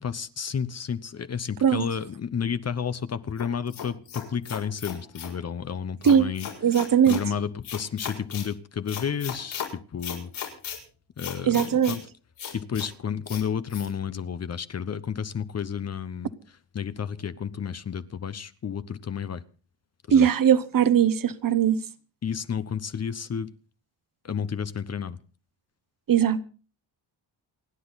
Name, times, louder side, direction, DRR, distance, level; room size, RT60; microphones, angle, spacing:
voice 1, 0.0-6.5 7.1-9.6 9.9-10.3 11.2-12.0 12.5-16.3 16.7-19.4 20.1-20.3 22.2-23.5 24.2-25.2, left 7 dB, 35° left, 14 dB, 0.8 m, -31 dB
sound 1, 3.4-5.4 6.0-7.2 7.6-8.5 8.9-9.7 10.0-10.8 11.2-12.0 12.4-12.9 13.3-13.4 13.7-13.9, left 8 dB, 85° left, 6.8 m, -36 dB
voice 2, 6.6-7.2 11.4-12.0 20.1-21.8 26.1-26.4, right 8 dB, 45° right, 14 dB, 1.1 m, -20 dB
28.5 x 10.0 x 4.0 m, 0.38 s
cardioid pair, 145°, 45 cm